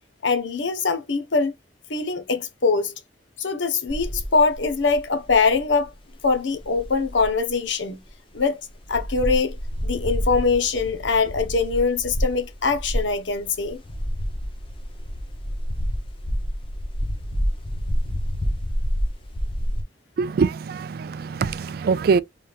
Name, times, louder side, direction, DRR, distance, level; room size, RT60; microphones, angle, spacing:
voice 1, 0.2-1.5 1.9-2.9 3.4-5.9 6.2-8.0 8.3-8.6 8.9-9.5 9.8-13.8, left 4 dB, 75° left, 0.8 m, -22 dB
sound 1, 3.9-7.5 8.1-8.2 8.3-8.4 8.8-19.8, equal, 30° left, 0.7 m, -28 dB
voice 2, 20.2-22.2, right 5 dB, 55° right, 0.3 m, -23 dB
3.3 x 3.3 x 2.3 m
head